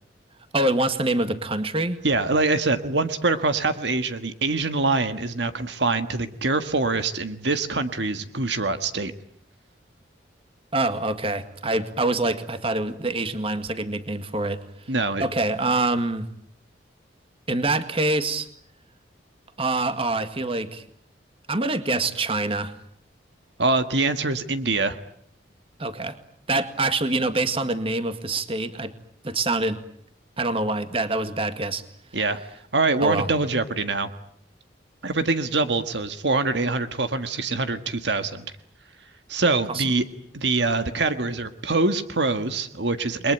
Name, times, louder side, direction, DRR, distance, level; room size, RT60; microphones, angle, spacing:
voice 1, 0.5-2.0 10.7-14.6 15.2-16.3 17.5-18.5 19.6-20.8 21.5-22.7 25.8-26.1 26.5-28.9 29.2-29.8 30.4-31.8 33.0-33.3 39.7-39.8, right 2 dB, 30° right, 10 dB, 1.9 m, -25 dB
voice 2, 2.0-9.1 14.9-15.3 23.6-25.0 32.1-32.4 32.7-34.1 35.0-38.4 39.3-40.0 40.3-43.3, right 3 dB, 65° right, 9 dB, 1.7 m, -24 dB
29.5 x 22.5 x 9.0 m, 0.66 s
head